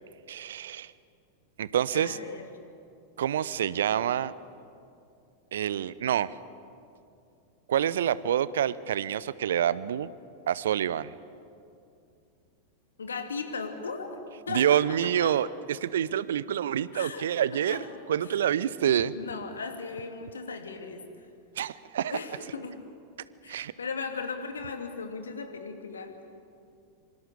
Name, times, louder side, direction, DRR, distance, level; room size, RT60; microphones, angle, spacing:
voice 1, 0.3-0.9 1.6-2.2 3.2-4.3 5.5-6.3 7.7-10.1 10.5-11.1 14.5-17.8 18.1-19.1 21.6-22.1 23.5-23.7, right 10 dB, 60° right, 19 dB, 0.7 m, -27 dB
voice 2, 1.9-2.5 13.0-14.1 14.5-14.8 15.2-15.3 16.9-17.9 18.2-18.5 18.8-21.0 22.0-22.8 23.4-26.1, left 4 dB, 70° left, 6 dB, 2.6 m, -37 dB
26.0 x 26.0 x 6.9 m, 2.5 s
figure-of-eight pair, 90°, 0 cm